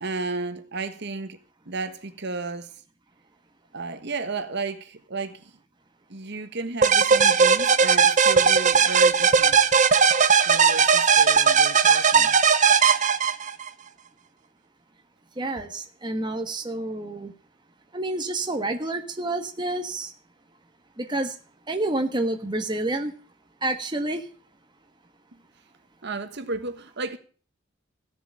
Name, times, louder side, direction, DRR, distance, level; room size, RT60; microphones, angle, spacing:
voice 1, 0.0-1.4 1.6-2.7 3.7-5.5 6.1-9.6 10.5-12.4 26.0-27.2, right 3 dB, 60° right, 1.4 m, -33 dB
sound 1, 6.8-13.7, right 6 dB, 40° right, 0.9 m, -18 dB
voice 2, 15.4-17.3 17.9-20.1 21.0-21.4 21.7-23.1 23.6-24.3, right 2 dB, 25° right, 1.3 m, -28 dB
15.5 x 7.0 x 8.7 m
head